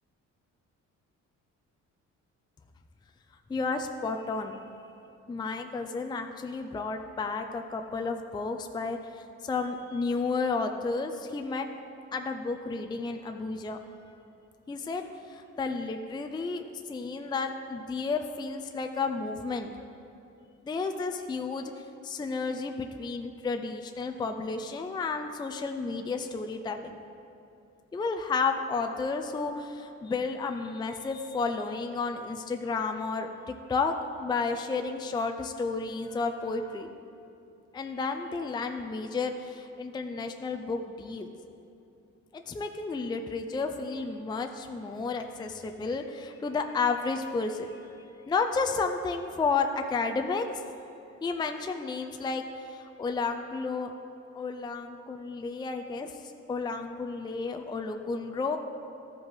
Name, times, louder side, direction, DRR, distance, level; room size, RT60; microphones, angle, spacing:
voice 1, 3.5-4.6 5.3-11.7 12.1-13.8 14.7-19.7 20.6-27.0 27.9-36.9 37.7-41.3 42.3-47.8 48.3-50.6 51.2-54.0 54.4-56.2 56.5-58.6, left 4 dB, 15° left, 5 dB, 0.4 m, -32 dB
12.5 x 5.2 x 3.9 m, 2.8 s
cardioid pair, 90°, 30 cm